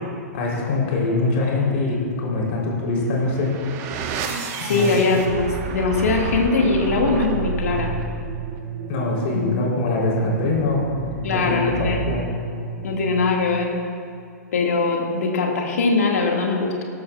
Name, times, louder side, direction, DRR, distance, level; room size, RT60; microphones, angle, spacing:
voice 1, 0.3-3.5 4.7-5.1 8.9-10.9 11.3-12.2, left 3 dB, 45° left, -3 dB, 3.5 m, -23 dB
sound 1, 3.0-13.7, right 5 dB, 35° right, 1.2 m, -31 dB
voice 2, 4.6-7.9 9.3-9.6 11.2-12.1 12.8-13.7 14.5-16.8, left 3 dB, 60° left, 1 dB, 1.9 m, -21 dB
18.0 x 13.5 x 2.4 m, 2.3 s
figure-of-eight pair, 110°, 9 cm